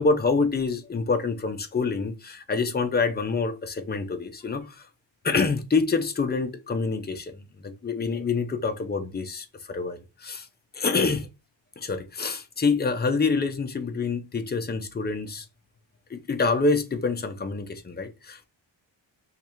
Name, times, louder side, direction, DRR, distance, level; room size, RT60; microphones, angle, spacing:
voice 1, 0.0-4.9 5.2-10.5 10.7-11.3 11.8-15.5 16.1-18.4, left 4 dB, 20° left, 0.5 m, -26 dB
3.2 x 2.3 x 4.4 m
wide cardioid pair, 170°, 46 cm